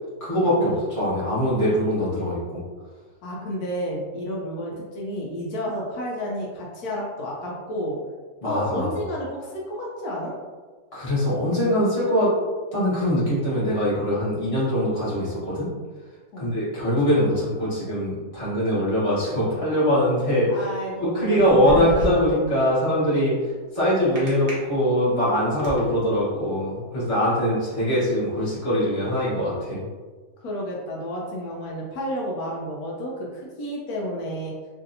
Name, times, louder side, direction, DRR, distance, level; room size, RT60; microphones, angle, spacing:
voice 1, 0.2-2.6 8.4-8.9 10.9-12.3 12.7-15.7 16.4-20.7 21.0-29.9, equal, 25° left, -10 dB, 1.2 m, -22 dB
voice 2, 3.2-8.0 8.4-10.3 16.3-16.5 20.5-21.4 30.4-34.5, equal, 80° left, -3 dB, 1.1 m, -31 dB
sound 1, 21.2-22.4 24.2-24.5 25.1-25.8, right 1 dB, 50° right, 1.2 m, -29 dB
3.2 x 2.6 x 2.6 m, 1.4 s
omnidirectional pair, 1.6 m